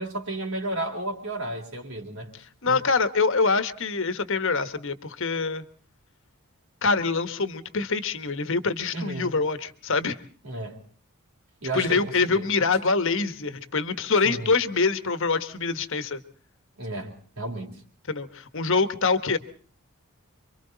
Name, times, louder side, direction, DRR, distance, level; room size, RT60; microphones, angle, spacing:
voice 1, 0.0-2.3 2.7-2.8 8.9-9.3 10.4-10.8 11.6-12.5 14.2-14.5 16.8-17.7, right 2 dB, 65° right, 3.9 m, -33 dB
voice 2, 2.6-5.6 6.8-10.2 11.7-16.2 18.1-19.4, left 4 dB, 60° left, 1.4 m, -25 dB
28.0 x 24.5 x 4.0 m
head